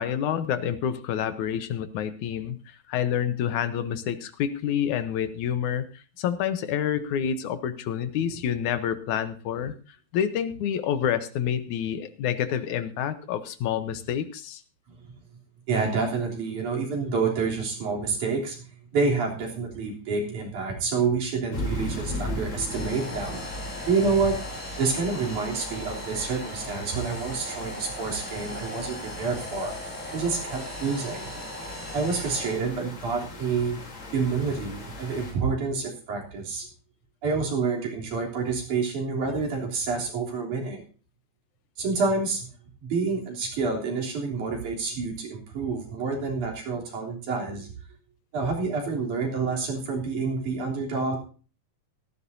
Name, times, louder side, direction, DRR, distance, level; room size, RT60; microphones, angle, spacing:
voice 1, 0.0-2.6 2.9-5.9 6.2-9.7 10.1-14.6, left 9 dB, 80° left, 11 dB, 2.4 m, -28 dB
voice 2, 15.7-18.7 18.9-23.4 23.9-24.4 24.8-29.7 30.1-31.3 31.9-33.8 34.1-36.7 37.2-40.8 41.8-42.5 42.8-47.7 48.3-51.2, right 4 dB, 90° right, -2 dB, 4.9 m, -28 dB
sound 1, 21.5-35.3, left 2 dB, 65° left, 4.6 m, -38 dB
sound 2, 22.7-32.6, equal, 5° right, 5.4 m, -39 dB
16.5 x 14.0 x 2.7 m, 0.37 s
omnidirectional pair, 3.4 m